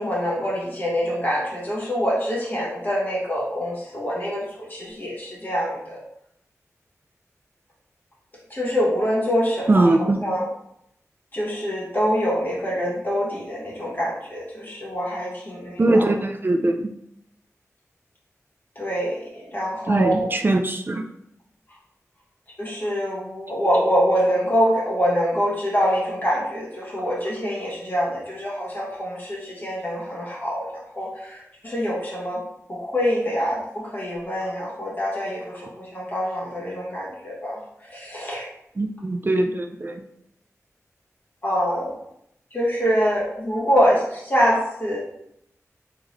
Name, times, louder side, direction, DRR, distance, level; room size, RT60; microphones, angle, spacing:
voice 1, 0.0-6.0 8.5-10.0 10.2-10.4 11.3-16.1 18.7-20.3 22.6-30.7 31.0-32.4 32.7-37.6 37.9-38.5 41.4-41.9 42.5-45.0, equal, 35° left, -5 dB, 1.4 m, -25 dB
voice 2, 9.7-10.2 15.8-16.9 19.9-21.0 38.8-40.0, right 2 dB, 40° right, 4 dB, 0.4 m, -21 dB
3.6 x 3.5 x 3.1 m, 0.76 s
wide cardioid pair, 70°, 6 cm